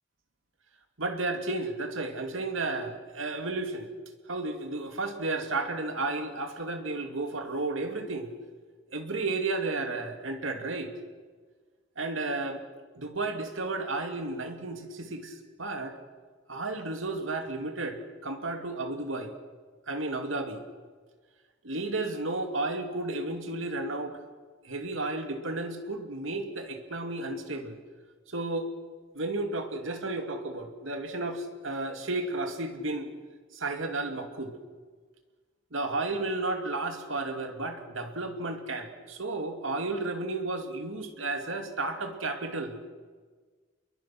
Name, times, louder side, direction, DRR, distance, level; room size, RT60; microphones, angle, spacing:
voice 1, 1.0-3.9 4.3-8.3 8.9-10.9 12.0-12.6 12.9-16.0 16.5-19.3 19.9-20.6 21.6-24.2 24.6-27.8 28.3-28.7 29.1-33.1 33.5-34.5 35.7-42.7, right 2 dB, 85° right, 5 dB, 2.6 m, -33 dB
28.0 x 22.0 x 6.1 m, 1.5 s
head